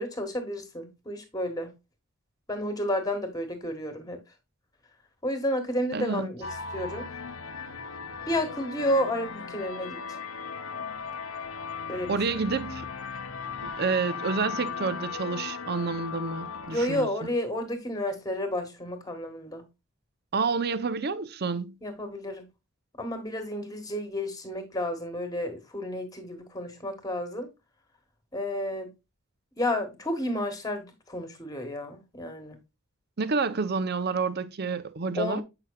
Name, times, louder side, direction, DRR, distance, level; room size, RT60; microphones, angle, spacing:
voice 1, 0.0-1.7 2.5-4.2 5.2-6.5 6.7-7.1 8.3-10.2 11.9-12.2 16.7-19.6 21.8-22.4 23.0-27.5 28.3-28.9 29.6-32.6 35.1-35.4, left 1 dB, 15° left, 1.4 m, -31 dB
voice 2, 5.9-6.3 12.1-12.8 13.6-17.3 20.3-21.8 33.2-35.4, right 4 dB, 45° right, 0.6 m, -29 dB
sound 1, 6.4-17.0, left 5 dB, 70° left, 0.7 m, -37 dB
7.9 x 5.8 x 2.3 m
head